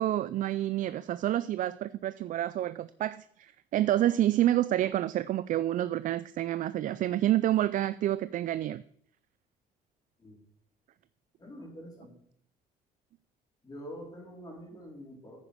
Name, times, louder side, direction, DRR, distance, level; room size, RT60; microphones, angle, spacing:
voice 1, 0.0-8.8, right 13 dB, 50° right, 0.4 m, -28 dB
voice 2, 11.4-12.1 13.6-15.4, equal, 25° left, 4.4 m, -45 dB
9.8 x 9.5 x 4.9 m
cardioid pair, 110°, 17 cm